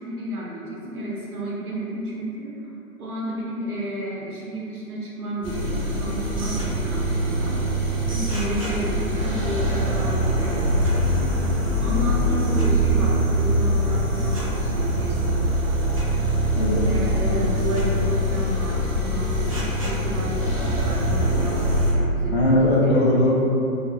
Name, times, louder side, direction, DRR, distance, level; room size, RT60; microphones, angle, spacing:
voice 1, 0.0-2.6 3.0-7.6 8.1-11.3 11.8-15.5 16.8-23.1, right 1 dB, 80° right, -5 dB, 0.8 m, -31 dB
sound 1, 5.4-21.9, equal, 25° right, 0.4 m, -23 dB
voice 2, 16.5-16.9 22.3-23.3, left 1 dB, 50° left, -4 dB, 0.4 m, -19 dB
2.3 x 2.1 x 2.7 m, 2.7 s
figure-of-eight pair, 125°, 44 cm